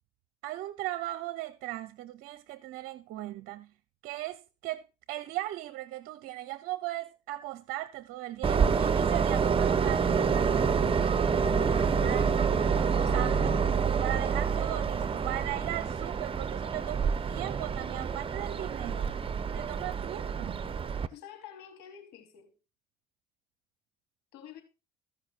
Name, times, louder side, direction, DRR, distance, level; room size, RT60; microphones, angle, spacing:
voice 1, 0.4-3.7 4.0-10.6 12.0-12.2 13.1-13.5 13.8-19.1 19.5-20.6, right 16 dB, 70° right, 0.7 m, -38 dB
Train, 8.4-21.1, right 6 dB, 30° right, 1.0 m, -28 dB
sound 1, 10.1-14.4, left 4 dB, 15° left, 0.8 m, -39 dB
voice 2, 11.1-12.0 13.0-13.3 14.1-14.6 21.1-22.5 24.3-24.6, left 10 dB, 75° left, 3.4 m, -48 dB
15.0 x 5.6 x 4.5 m
hypercardioid pair, 65°, 17 cm